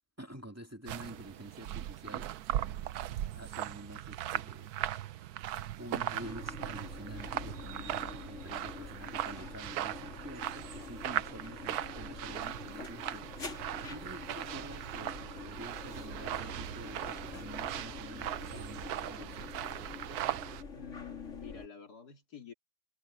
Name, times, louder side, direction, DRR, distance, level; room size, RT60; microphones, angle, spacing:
voice 1, 0.2-2.3 3.3-5.4 5.8-13.6 13.9-19.6, right 1 dB, 10° right, 1.8 m, -48 dB
sound 1, 0.9-20.6, right 12 dB, 70° right, 1.1 m, -39 dB
sound 2, 6.2-21.7, left 4 dB, 45° left, 3.2 m, -46 dB
voice 2, 20.7-22.5, left 9 dB, 65° left, 3.0 m, -48 dB
omnidirectional pair, 1.8 m